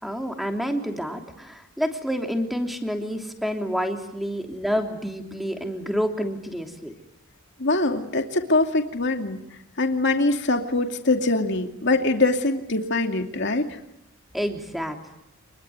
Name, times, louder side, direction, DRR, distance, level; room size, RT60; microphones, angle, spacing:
voice 1, 0.0-6.9 14.3-15.2, equal, ahead, 4 dB, 3.1 m, -28 dB
voice 2, 7.6-9.4 9.8-13.8, left 2 dB, 55° left, 5 dB, 2.5 m, -23 dB
27.5 x 21.5 x 9.5 m, 0.88 s
head